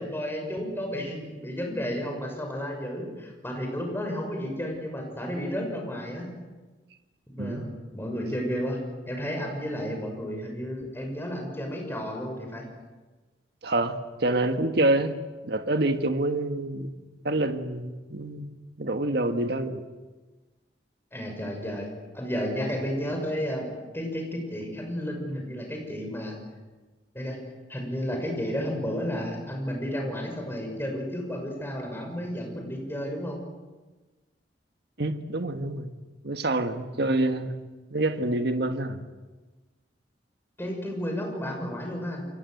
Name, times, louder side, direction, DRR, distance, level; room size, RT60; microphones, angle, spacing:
voice 1, 0.0-6.3 7.3-8.8 9.1-12.7 21.1-21.9 22.1-23.7 23.9-26.4 27.1-27.4 27.7-33.4 40.6-42.3, equal, 10° left, 2 dB, 6.6 m, -32 dB
voice 2, 13.6-15.2 15.4-16.9 17.2-18.5 18.8-19.8 35.0-35.9 36.2-37.6 37.9-39.0, right 2 dB, 60° right, 7 dB, 1.6 m, -27 dB
29.5 x 23.5 x 8.0 m, 1.2 s
head